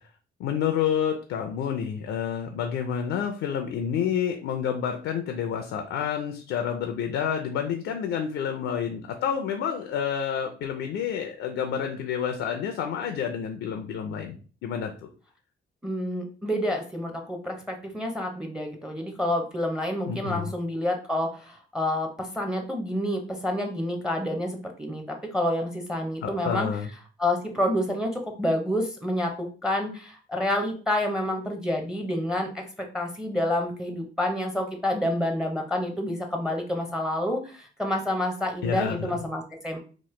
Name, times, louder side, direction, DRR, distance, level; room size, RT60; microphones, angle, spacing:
voice 1, 0.4-15.1 20.1-20.5 26.2-26.9 38.6-39.2, left 8 dB, 80° left, 5 dB, 0.4 m, -29 dB
voice 2, 15.8-25.0 25.3-26.7 27.2-32.6 32.9-39.8, left 1 dB, 5° right, 3 dB, 0.6 m, -28 dB
3.0 x 2.1 x 3.1 m, 0.38 s
cardioid pair, 90°, 20 cm